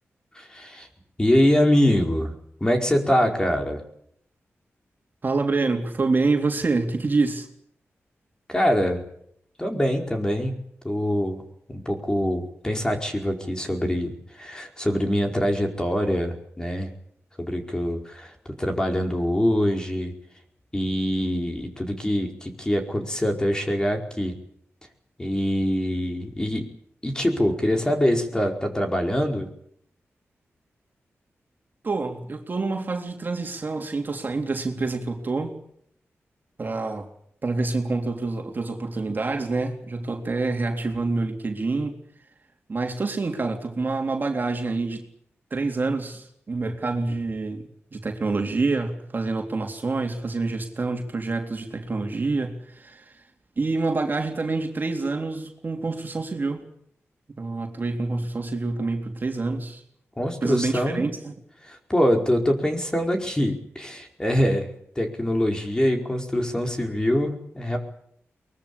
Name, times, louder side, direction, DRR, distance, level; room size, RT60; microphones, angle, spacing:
voice 1, 0.3-0.9 1.2-2.3 2.6-3.8 8.5-9.0 9.6-10.5 10.8-11.4 11.7-16.9 17.4-18.3 18.6-20.1 20.7-24.3 25.2-26.6 27.0-29.5 60.2-61.0 61.6-67.8, equal, 15° left, 3 dB, 4.9 m, -24 dB
voice 2, 5.2-7.5 31.8-35.6 36.6-37.1 37.4-42.0 42.7-45.0 45.5-53.2 53.6-56.6 57.4-59.8 60.4-61.4, right 3 dB, 40° right, 3 dB, 3.5 m, -27 dB
23.0 x 21.0 x 8.6 m, 0.69 s
wide cardioid pair, 95°, 5 cm